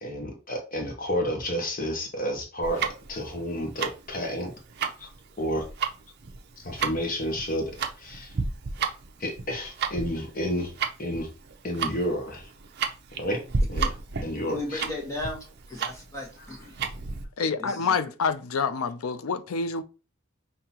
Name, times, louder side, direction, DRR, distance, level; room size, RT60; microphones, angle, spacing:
voice 1, 0.0-4.5 5.0-5.1 5.4-5.6 6.6-7.7 8.0-8.3 9.2-10.7 11.0-11.3 11.6-12.5 13.2-13.4 13.7-13.9 14.2-14.8, equal, 40° left, 1.0 m, -30 dB
Tick-tock, 2.6-17.2, right 5 dB, 50° right, 0.6 m, -32 dB
voice 2, 14.5-16.8 17.6-18.0, left 2 dB, 15° left, 1.3 m, -36 dB
voice 3, 17.4-19.8, left 5 dB, 90° left, 0.5 m, -27 dB
5.5 x 2.8 x 2.9 m
head